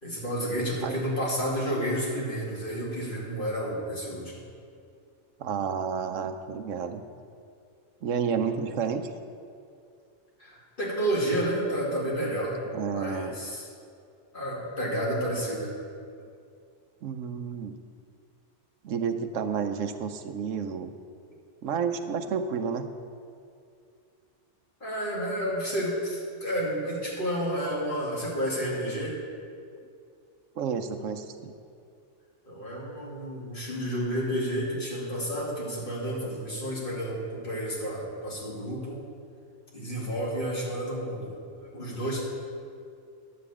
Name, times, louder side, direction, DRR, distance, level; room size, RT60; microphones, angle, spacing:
voice 1, 0.0-4.4 10.4-12.6 12.9-13.7 14.3-15.7 24.8-29.2 32.5-39.0 39.7-42.2, equal, 40° left, -6 dB, 2.7 m, -31 dB
voice 2, 5.4-7.0 8.0-9.1 12.7-13.4 17.0-17.8 18.8-20.9 21.6-22.9 30.6-31.5, right 6 dB, 80° right, 8 dB, 1.1 m, -30 dB
11.0 x 5.5 x 8.3 m, 2.4 s
omnidirectional pair, 1.3 m